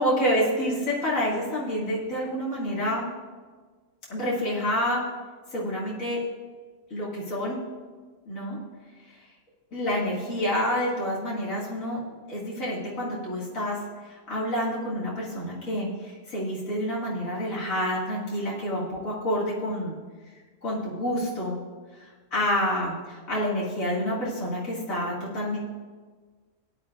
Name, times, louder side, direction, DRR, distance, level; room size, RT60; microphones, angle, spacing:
voice 1, 0.0-3.1 4.1-5.1 5.5-6.2 6.9-7.6 8.3-8.6 9.7-12.0 12.3-13.8 14.0-20.0 20.6-21.6 22.3-25.6, equal, 80° left, -6 dB, 2.6 m, -28 dB
17.5 x 10.5 x 2.5 m, 1.4 s
omnidirectional pair, 1.4 m